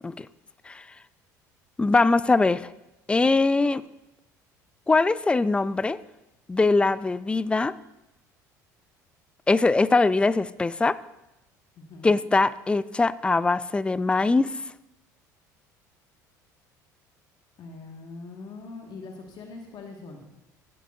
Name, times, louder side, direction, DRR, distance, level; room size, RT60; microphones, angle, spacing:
voice 1, 1.8-2.7 3.1-3.8 4.9-6.0 6.5-7.7 9.5-11.0 12.0-14.5, left 3 dB, 10° left, 17 dB, 0.3 m, -22 dB
voice 2, 11.8-12.2 17.6-20.3, left 3 dB, 50° left, 2 dB, 1.7 m, -42 dB
15.0 x 8.5 x 2.6 m, 0.95 s
hypercardioid pair, 65°, 9 cm